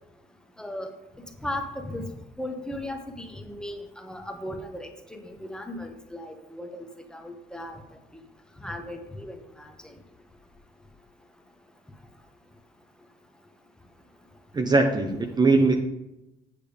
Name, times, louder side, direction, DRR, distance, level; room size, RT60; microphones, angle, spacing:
voice 1, 0.6-0.9 1.4-2.1 2.4-6.8 7.1-7.8 8.6-9.7, left 1 dB, 5° left, 4 dB, 1.0 m, -36 dB
voice 2, 14.5-15.8, right 3 dB, 25° right, 4 dB, 0.7 m, -21 dB
8.4 x 6.7 x 3.4 m, 0.94 s
cardioid pair, 110°, 17 cm